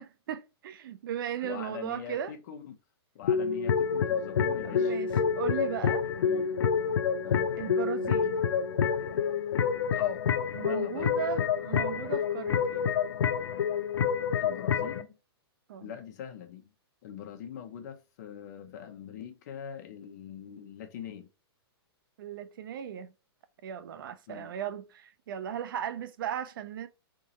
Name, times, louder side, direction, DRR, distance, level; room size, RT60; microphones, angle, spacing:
voice 1, 0.0-2.3 4.6-6.0 7.6-8.4 10.5-12.9 15.7-15.9 22.2-23.1 23.6-26.9, right 9 dB, 55° right, 0.6 m, -37 dB
voice 2, 1.4-2.7 3.1-5.0 6.2-6.6 7.2-7.5 9.9-10.3 10.6-11.5 14.4-15.2 15.8-16.7 17.0-21.3 24.3-24.5, left 8 dB, 40° left, 1.0 m, -42 dB
sound 1, 3.2-15.0, left 7 dB, 75° left, 0.7 m, -28 dB
3.9 x 3.7 x 2.9 m
hypercardioid pair, 160°, 14 cm